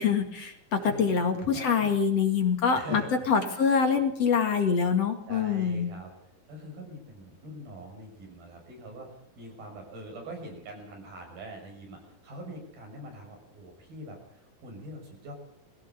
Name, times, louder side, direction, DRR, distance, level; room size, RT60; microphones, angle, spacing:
voice 1, 0.0-3.0 3.3-5.9, left 6 dB, 50° left, 5 dB, 2.9 m, -25 dB
voice 2, 0.8-1.9 2.7-3.6 5.3-6.1 6.5-15.3, right 1 dB, 90° right, 2 dB, 8.1 m, -43 dB
21.5 x 16.5 x 8.2 m, 0.70 s
omnidirectional pair, 4.1 m